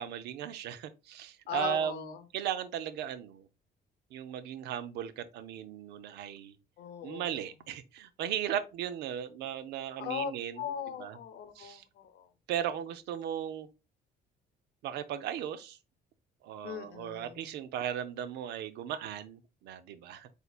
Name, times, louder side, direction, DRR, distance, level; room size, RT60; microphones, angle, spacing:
voice 1, 0.0-2.1 2.3-3.5 4.1-6.6 7.0-10.6 11.0-11.2 11.6-11.8 12.5-13.7 14.8-15.8 16.4-20.3, right 10 dB, 80° right, 0.6 m, -36 dB
voice 2, 1.5-2.3 6.8-7.4 10.0-10.3 10.6-12.3 16.6-17.5, left 9 dB, 70° left, 0.8 m, -39 dB
7.9 x 2.8 x 2.4 m
cardioid pair, 110°, 17 cm